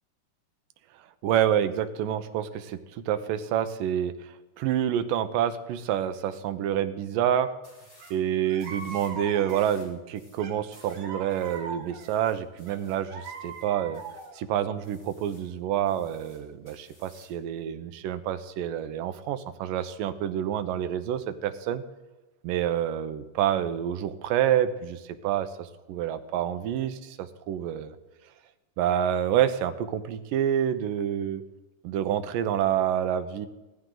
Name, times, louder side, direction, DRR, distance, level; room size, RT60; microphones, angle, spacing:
voice 1, 1.2-7.5 8.1-14.0 14.3-21.8 22.4-28.0 28.8-31.4 31.8-33.5, right 10 dB, 90° right, 11 dB, 2.4 m, -28 dB
sound 1, 7.6-8.2 8.6-9.2 9.5-14.4 14.8-15.5 15.9-17.4, left 1 dB, 20° left, 4.0 m, -58 dB
sound 2, 8.0-8.1 8.5-9.8 10.4-12.1 12.7-14.4, right 4 dB, 65° right, 3.0 m, -41 dB
17.0 x 14.0 x 3.8 m, 1.1 s
omnidirectional pair, 3.8 m